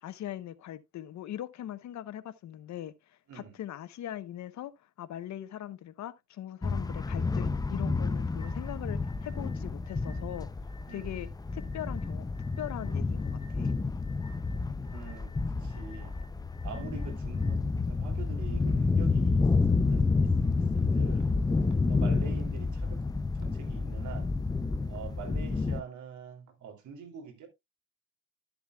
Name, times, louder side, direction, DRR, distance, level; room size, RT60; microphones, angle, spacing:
voice 1, 0.0-4.7 5.0-10.5 10.9-12.2 12.6-13.7, left 12 dB, 65° left, 0.8 m, -40 dB
voice 2, 3.3-3.6 10.9-11.2 14.8-15.3 15.6-16.2 16.6-21.3 21.6-23.0 23.3-24.4 24.9-27.5, right 6 dB, 70° right, 2.7 m, -45 dB
sound 1, 6.6-25.8, left 3 dB, 15° left, 0.4 m, -29 dB
sound 2, 8.4-17.5, left 2 dB, 15° right, 3.6 m, -57 dB
12.0 x 7.0 x 2.3 m
cardioid pair, 90°, 30 cm